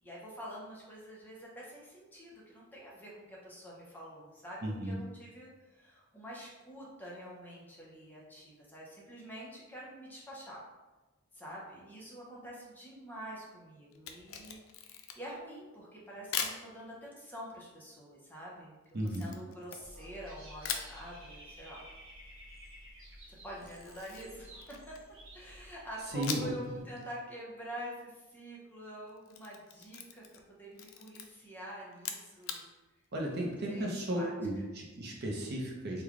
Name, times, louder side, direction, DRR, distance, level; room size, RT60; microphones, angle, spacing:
voice 1, 0.0-10.6 11.3-14.6 14.9-18.8 19.0-21.8 23.4-25.0 25.3-32.6 33.3-34.3, equal, 10° left, -5 dB, 0.7 m, -47 dB
voice 2, 4.6-4.9 18.9-19.2 26.1-26.8 33.1-36.0, right 1 dB, 55° right, -1 dB, 0.6 m, -35 dB
Camera, 13.9-15.4 16.3-16.6 19.1-20.2 20.6-21.0 23.6-25.1 26.2-26.7 27.0-27.1 29.1-30.5 30.7-31.3 31.9-32.6, left 7 dB, 75° left, 0.4 m, -40 dB
Dog / Bird, 19.8-26.8, equal, 85° right, 1.1 m, -53 dB
3.2 x 2.3 x 3.6 m, 1.2 s
head